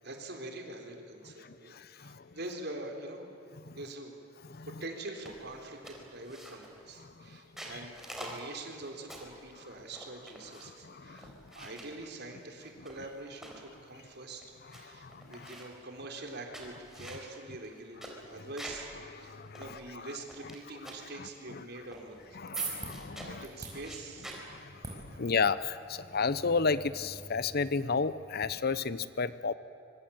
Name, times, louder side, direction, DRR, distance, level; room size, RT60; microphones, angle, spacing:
voice 1, 0.0-3.3 3.8-4.2 4.6-14.4 14.7-22.4 22.8-24.3 25.1-25.3, right 2 dB, 55° right, 3 dB, 3.8 m, -45 dB
voice 2, 1.7-2.2 3.7-3.8 4.5-4.7 10.8-11.3 14.9-15.3 19.2-19.6 22.4-23.4 24.5-29.5, left 4 dB, 50° left, 16 dB, 0.8 m, -32 dB
sound 1, 5.3-5.5 5.8-6.8 7.4-9.4 9.9-10.8 11.2-12.0 12.6-13.6 14.1-14.2 14.4-14.8 15.1-15.8 16.3-18.9 19.2-19.3 19.6-20.6 20.8-21.1 21.9-22.3 22.6-23.4 23.8-24.4, right 1 dB, ahead, 4.4 m, -47 dB
sound 2, 22.1-28.5, right 3 dB, 20° right, 5.6 m, -45 dB
25.0 x 23.5 x 8.8 m, 2.7 s
head